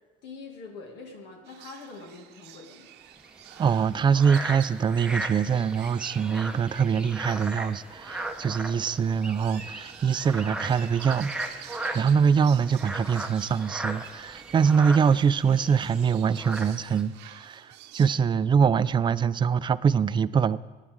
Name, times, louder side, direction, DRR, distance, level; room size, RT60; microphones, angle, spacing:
voice 1, 0.2-2.9, left 3 dB, 85° left, 1 dB, 2.2 m, -44 dB
sound 1, 1.5-18.2, right 12 dB, 85° right, 0.7 m, -49 dB
sound 2, 3.2-17.0, right 1 dB, 5° right, 0.8 m, -37 dB
voice 2, 3.6-20.6, right 6 dB, 30° right, 15 dB, 0.4 m, -24 dB
17.5 x 9.9 x 3.6 m, 1.3 s
cardioid pair, 110°, 17 cm